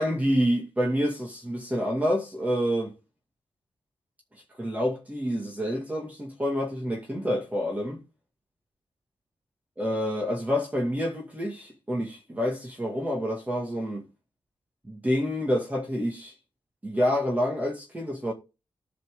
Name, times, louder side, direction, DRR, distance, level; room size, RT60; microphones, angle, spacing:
voice 1, 0.0-2.9 4.6-8.0 9.8-14.0 14.8-16.3 16.8-18.3, equal, 15° right, 2.3 m, -28 dB
14.5 x 6.0 x 3.9 m
wide cardioid pair, 135°, 10 cm